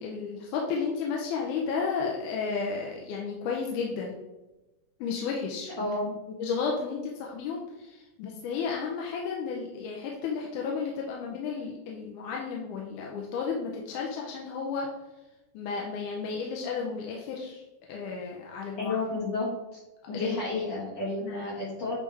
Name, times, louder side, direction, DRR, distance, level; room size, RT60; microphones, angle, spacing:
voice 1, 0.0-4.1 5.0-5.7 6.4-14.9 15.5-17.6 17.9-19.0 20.1-20.4 21.2-21.5, left 5 dB, 80° left, -1 dB, 2.2 m, -33 dB
voice 2, 5.8-6.2 18.8-19.8 20.1-22.0, left 2 dB, 55° left, -8 dB, 2.4 m, -31 dB
8.5 x 3.3 x 3.3 m, 1.0 s
omnidirectional pair, 3.7 m